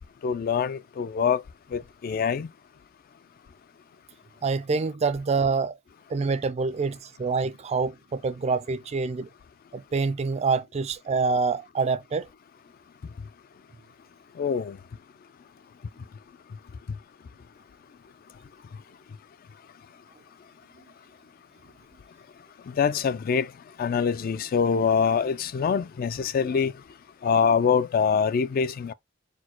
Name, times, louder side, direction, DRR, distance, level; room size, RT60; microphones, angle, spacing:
voice 1, 0.2-1.4 1.7-2.5 14.4-14.8 22.8-23.5 23.8-26.7 27.2-28.9, left 6 dB, 45° left, 0.3 m, -24 dB
voice 2, 4.4-5.7 6.1-9.3 9.7-12.3, right 4 dB, 30° right, 0.3 m, -26 dB
4.4 x 2.2 x 4.3 m
head